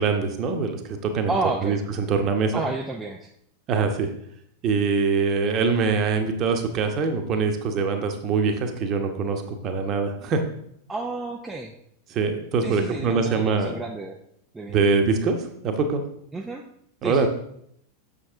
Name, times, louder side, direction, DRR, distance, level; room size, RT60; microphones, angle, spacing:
voice 1, 0.0-1.3 1.6-2.5 3.7-4.1 4.6-10.4 12.1-13.8 14.7-16.0 17.0-17.3, right 4 dB, 35° right, 5 dB, 1.1 m, -23 dB
voice 2, 1.3-1.8 2.5-3.3 10.9-11.7 12.6-14.2 14.5-15.0 16.3-16.7 17.0-17.3, right 3 dB, 10° right, 1 dB, 0.6 m, -30 dB
7.0 x 6.9 x 3.7 m, 0.71 s
figure-of-eight pair, 90°, 0 cm